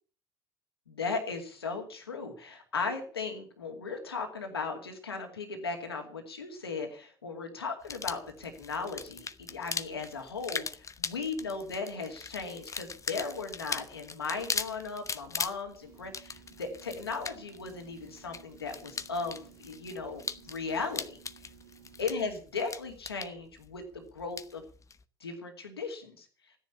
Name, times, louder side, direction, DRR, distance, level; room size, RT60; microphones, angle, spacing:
voice 1, 0.9-21.4 22.0-24.6 25.2-26.3, left 4 dB, 85° left, 4 dB, 2.4 m, -37 dB
sound 1, 7.8-25.0, left 5 dB, 25° left, 1.0 m, -40 dB
sound 2, 15.8-22.1, right 9 dB, 80° right, 3.8 m, -56 dB
14.5 x 10.5 x 7.0 m, 0.41 s
figure-of-eight pair, 60°, 13 cm